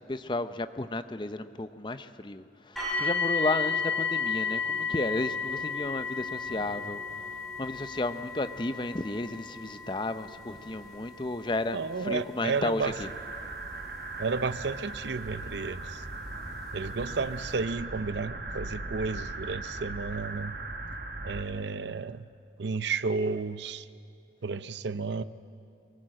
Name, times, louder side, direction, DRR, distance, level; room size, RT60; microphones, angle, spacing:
voice 1, 0.0-7.0 7.6-13.1, left 2 dB, 25° left, 11 dB, 0.6 m, -33 dB
sound 1, 2.8-15.6 16.5-16.6 17.2-17.3, left 5 dB, ahead, 7.1 m, -34 dB
voice 2, 11.7-13.0 14.2-16.0 16.7-20.6 21.2-22.2 22.6-23.8 24.4-25.2, right 4 dB, 75° right, 14 dB, 0.6 m, -32 dB
sound 2, 12.8-21.4, right 2 dB, 55° right, 1.3 m, -38 dB
23.0 x 19.0 x 7.7 m, 2.5 s
head